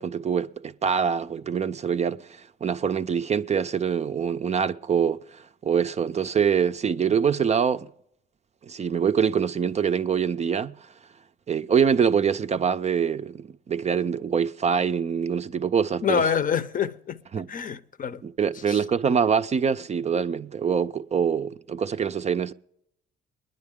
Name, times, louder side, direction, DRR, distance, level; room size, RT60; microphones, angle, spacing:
voice 1, 0.0-7.9 8.6-10.7 11.5-16.3 17.3-17.5 18.2-22.5, right 7 dB, 35° right, 0.4 m, -24 dB
voice 2, 16.0-17.2 17.5-18.2 18.7-18.8, left 7 dB, 45° left, 0.6 m, -26 dB
21.0 x 10.5 x 3.6 m
cardioid pair, 90°, 20 cm